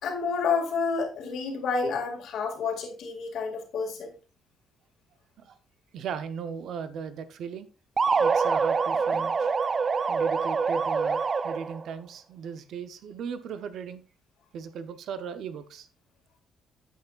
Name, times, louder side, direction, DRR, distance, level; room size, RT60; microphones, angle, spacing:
voice 1, 0.0-4.2, left 5 dB, 65° left, 2.3 m, -29 dB
voice 2, 5.9-7.7 8.2-9.5 10.1-14.0 14.5-15.9, right 6 dB, 60° right, 0.8 m, -37 dB
sound 1, 8.0-11.8, right 5 dB, 25° right, 0.3 m, -25 dB
9.2 x 8.2 x 2.5 m
cardioid pair, 160°, 0 cm